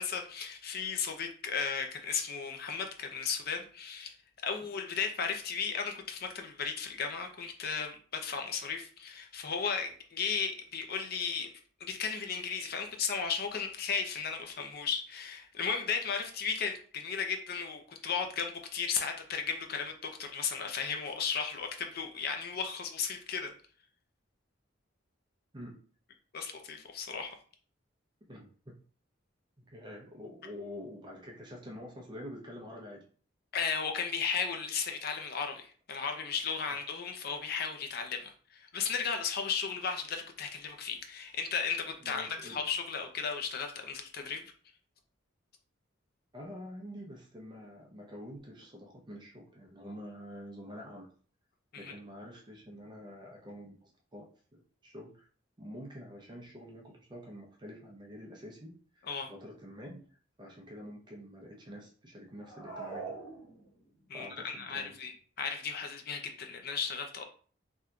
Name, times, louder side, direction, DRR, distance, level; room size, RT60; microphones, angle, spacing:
voice 1, 0.0-4.1 4.4-11.5 11.8-23.5 26.3-27.3 33.5-44.4 51.7-51.9 59.1-59.3 64.1-67.2, left 6 dB, 50° left, 4 dB, 0.5 m, -35 dB
voice 2, 28.3-28.8 29.7-33.0 42.0-42.6 46.3-51.1 51.8-54.3 54.5-55.3 55.6-63.2 64.1-65.0, equal, 25° right, -1 dB, 0.6 m, -47 dB
sound 1, 62.4-64.0, right 4 dB, 70° left, 1.5 m, -43 dB
3.5 x 2.7 x 2.3 m, 0.42 s
head